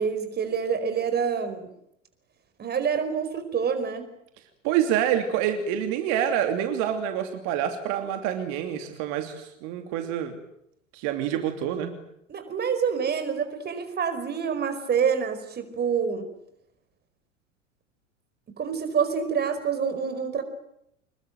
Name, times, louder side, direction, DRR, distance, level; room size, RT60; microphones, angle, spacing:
voice 1, 0.0-1.7 2.6-4.1 12.3-16.3 18.6-20.4, right 6 dB, 25° right, 8 dB, 4.9 m, -27 dB
voice 2, 4.6-10.4 10.9-11.9, right 10 dB, 45° right, 6 dB, 3.0 m, -27 dB
27.5 x 21.5 x 9.2 m, 0.79 s
figure-of-eight pair, 80°, 38 cm